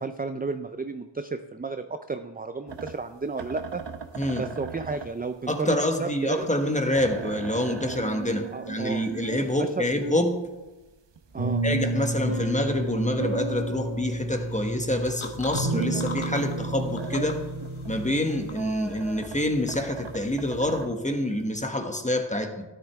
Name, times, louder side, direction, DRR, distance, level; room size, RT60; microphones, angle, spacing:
voice 1, 0.0-3.8 4.4-6.5 8.5-9.1 9.6-9.8 11.3-11.6, right 4 dB, 20° right, 9 dB, 0.4 m, -32 dB
sound 1, 2.7-16.3 16.6-20.9, right 5 dB, 60° right, 0.9 m, -40 dB
voice 2, 5.5-10.4 11.6-17.4 17.9-22.6, left 1 dB, 15° left, 5 dB, 1.3 m, -27 dB
sound 2, 11.4-18.4, right 2 dB, 80° right, 1.9 m, -30 dB
sound 3, 15.0-21.6, left 6 dB, 70° left, 1.0 m, -44 dB
12.5 x 10.0 x 3.5 m, 1.1 s
wide cardioid pair, 65°, 49 cm